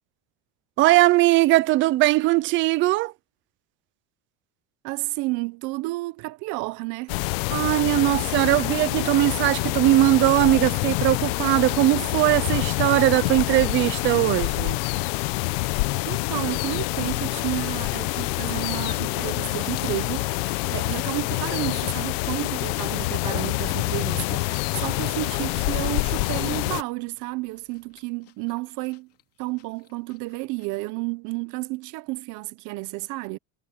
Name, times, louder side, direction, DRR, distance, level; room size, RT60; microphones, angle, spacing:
voice 1, 0.8-3.1 7.5-14.8, right 17 dB, 30° right, 0.4 m, -20 dB
voice 2, 4.8-7.2 16.1-29.1 29.4-33.4, right 22 dB, 50° right, 0.8 m, -31 dB
sound 1, 7.1-26.8, left 24 dB, 75° left, 0.8 m, -26 dB
Engine, 12.5-28.1, left 6 dB, 20° left, 8.0 m, -65 dB
sound 2, 19.0-23.3 23.6-26.9 27.4-30.9, left 12 dB, 35° left, 2.5 m, -53 dB
cardioid pair, 175°, 40 cm